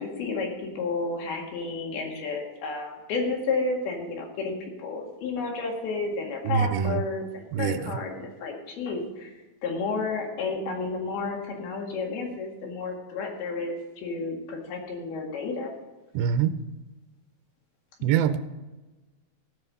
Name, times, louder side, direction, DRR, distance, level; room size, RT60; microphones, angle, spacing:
voice 1, 0.0-9.3 9.6-15.7 18.0-18.1, left 4 dB, 80° left, 1 dB, 3.8 m, -31 dB
voice 2, 6.4-7.0 7.5-7.9 16.1-16.5 18.0-18.4, right 8 dB, 85° right, 11 dB, 2.4 m, -24 dB
16.5 x 5.5 x 5.5 m, 1.1 s
omnidirectional pair, 4.3 m